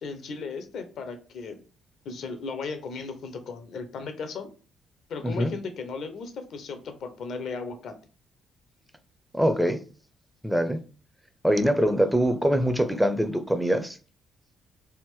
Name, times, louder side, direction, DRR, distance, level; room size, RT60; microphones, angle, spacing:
voice 1, 0.0-1.6 2.0-4.5 5.1-7.9, left 4 dB, 55° left, 0.6 m, -36 dB
voice 2, 9.3-9.8 10.4-10.8 11.4-14.0, equal, 5° right, 0.5 m, -23 dB
3.4 x 2.5 x 3.5 m
figure-of-eight pair, 45°, 0 cm